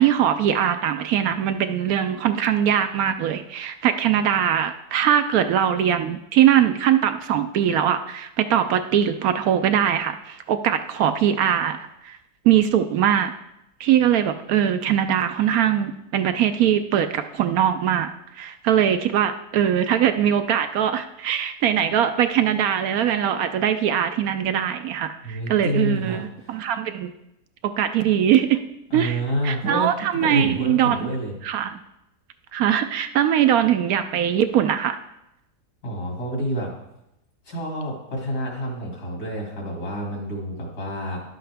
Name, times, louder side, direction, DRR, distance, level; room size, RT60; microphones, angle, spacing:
voice 1, 0.0-11.8 12.0-12.2 12.4-13.3 13.8-18.1 18.4-27.1 27.6-28.6 28.9-31.1 31.4-31.8 32.5-35.0, right 10 dB, 70° right, 9 dB, 1.0 m, -21 dB
voice 2, 25.2-26.6 28.9-29.9 30.2-31.3 35.8-36.7 37.5-41.2, equal, 65° left, -2 dB, 2.9 m, -28 dB
11.5 x 7.8 x 3.4 m, 0.85 s
omnidirectional pair, 1.7 m